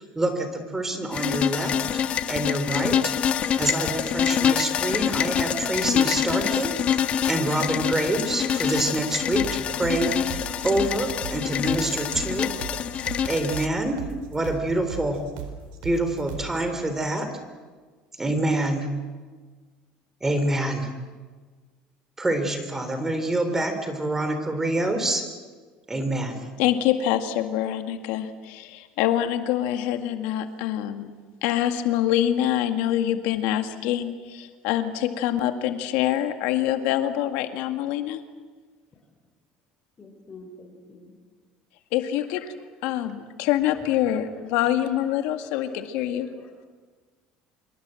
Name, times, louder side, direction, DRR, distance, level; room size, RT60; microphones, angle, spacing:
voice 1, 0.0-1.7 2.3-3.1 3.6-6.8 7.3-12.5 13.3-14.1 14.3-15.2 15.8-17.3 18.2-18.9 20.2-20.9 22.2-25.2 25.9-26.5, right 1 dB, 15° right, 8 dB, 3.7 m, -26 dB
sound 1, 1.1-13.7, left 8 dB, 45° left, 1.4 m, -26 dB
sound 2, 9.4-16.6, right 7 dB, 80° right, 4.6 m, -37 dB
voice 2, 26.6-31.1 31.4-38.2 41.9-42.5 42.8-46.3, left 12 dB, 75° left, 7 dB, 2.0 m, -25 dB
voice 3, 40.0-41.1 44.8-44.9 45.5-45.6 46.2-46.5, left 3 dB, 25° left, 4 dB, 5.1 m, -46 dB
26.0 x 23.5 x 7.8 m, 1.4 s
cardioid pair, 120°, 3 cm